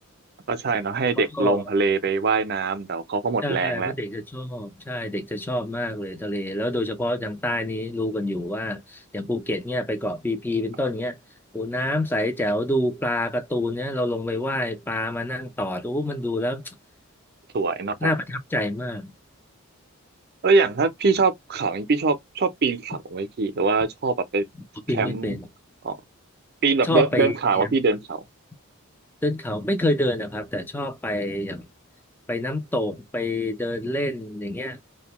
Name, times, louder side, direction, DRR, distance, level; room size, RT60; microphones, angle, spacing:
voice 1, 0.5-3.9 17.5-18.1 20.4-24.4 24.9-25.4 25.8-26.0 26.6-28.2, right 4 dB, 50° right, 0.5 m, -23 dB
voice 2, 1.3-1.6 3.4-11.2 11.5-16.7 18.0-19.1 24.9-25.5 26.8-27.7 29.2-31.7 32.3-34.8, left 1 dB, 10° left, 0.4 m, -27 dB
2.6 x 2.1 x 2.9 m
head